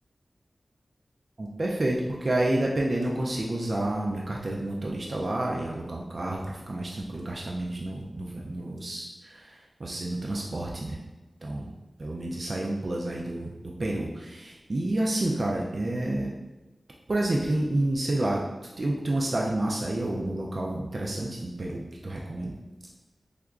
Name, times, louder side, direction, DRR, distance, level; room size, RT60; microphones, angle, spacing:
voice 1, 1.4-11.0 11.4-11.7 12.0-16.3 17.1-18.4 18.8-22.5, right 1 dB, 50° right, -2 dB, 0.3 m, -29 dB
3.4 x 2.8 x 2.4 m, 1.1 s
wide cardioid pair, 90°, 0 cm